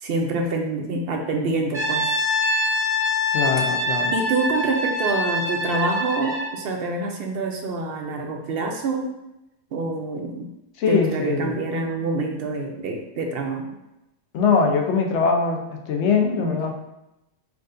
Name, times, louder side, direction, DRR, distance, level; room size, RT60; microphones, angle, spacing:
voice 1, 0.0-2.2 4.1-9.1 9.7-10.5 10.9-13.7 16.4-16.5, right 3 dB, 65° right, 3 dB, 0.7 m, -26 dB
Brass instrument, 1.7-6.6, left 1 dB, 5° right, 0.7 m, -24 dB
voice 2, 3.3-4.1 10.8-11.6 14.3-16.7, left 5 dB, 80° left, 2 dB, 0.9 m, -22 dB
4.7 x 2.5 x 2.5 m, 0.90 s
omnidirectional pair, 1.2 m